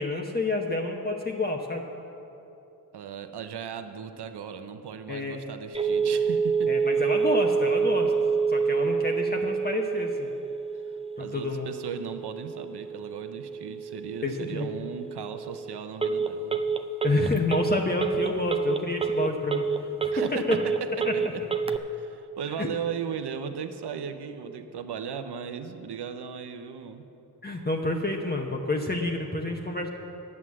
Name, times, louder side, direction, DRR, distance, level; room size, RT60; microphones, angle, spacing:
voice 1, 0.0-1.8 5.1-5.4 6.7-8.1 8.5-10.3 11.2-11.7 14.2-14.7 17.0-19.6 20.0-20.6 21.0-21.1 22.6-22.7 27.4-29.9, left 2 dB, 25° left, 1 dB, 1.0 m, -29 dB
voice 2, 2.9-6.7 11.2-16.6 20.1-21.4 21.9-27.0, right 7 dB, 75° right, 8 dB, 0.7 m, -36 dB
Telephone, 5.7-21.8, right 5 dB, 15° right, 0.5 m, -28 dB
9.7 x 7.7 x 7.3 m, 2.9 s
cardioid pair, 40°, 40 cm